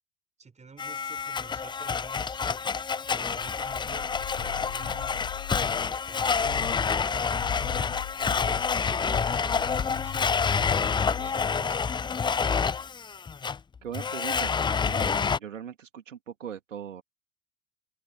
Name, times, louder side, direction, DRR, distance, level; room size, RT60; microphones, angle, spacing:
voice 1, 0.4-2.4 3.1-5.2 5.8-7.5 8.2-11.8, right 5 dB, 15° right, 6.4 m, -48 dB
Domestic sounds home sounds, 0.8-15.4, left 6 dB, 10° left, 0.7 m, -28 dB
sound 1, 3.4-6.0 6.3-6.9 7.3-11.5, left 22 dB, 55° left, 5.1 m, -42 dB
voice 2, 13.8-14.6 14.8-17.0, right 8 dB, 75° right, 2.9 m, -39 dB
open air
figure-of-eight pair, 75°, 39 cm